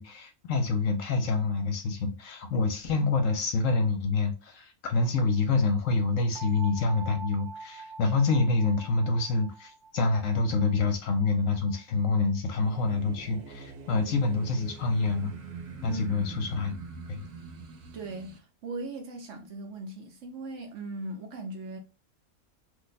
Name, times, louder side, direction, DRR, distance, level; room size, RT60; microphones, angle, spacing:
voice 1, 0.0-15.3 15.8-16.7 17.1-17.2, left 3 dB, 70° left, 0.9 m, -27 dB
sound 1, 6.3-12.2, right 4 dB, 40° right, 0.3 m, -46 dB
sound 2, 12.6-18.4, right 4 dB, 90° right, 1.1 m, -44 dB
voice 2, 15.9-16.4 17.9-21.8, right 2 dB, 65° right, 0.9 m, -39 dB
2.6 x 2.2 x 3.9 m
omnidirectional pair, 1.6 m